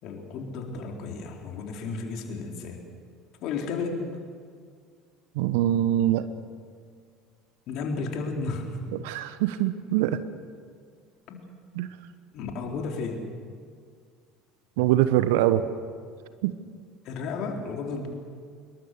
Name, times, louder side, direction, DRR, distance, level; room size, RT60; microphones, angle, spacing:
voice 1, 0.0-2.8 3.4-4.1 7.7-8.8 11.3-11.4 12.3-13.2 17.0-18.1, left 4 dB, 50° left, 2 dB, 4.3 m, -33 dB
voice 2, 5.4-6.2 8.9-10.2 11.8-11.9 14.8-15.6 16.4-16.5, right 13 dB, 65° right, 13 dB, 1.1 m, -23 dB
26.5 x 22.0 x 6.8 m, 2.1 s
figure-of-eight pair, 65°, 0 cm